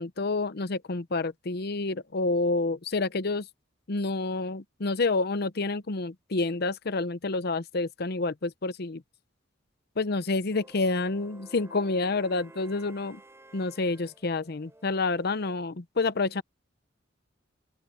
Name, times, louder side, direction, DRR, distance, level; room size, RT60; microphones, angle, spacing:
voice 1, 0.0-3.5 3.9-9.0 10.0-13.2 13.5-16.4, left 3 dB, 55° left, 0.8 m, -28 dB
sound 1, 10.5-15.6, right 1 dB, 15° right, 3.5 m, -53 dB
open air
head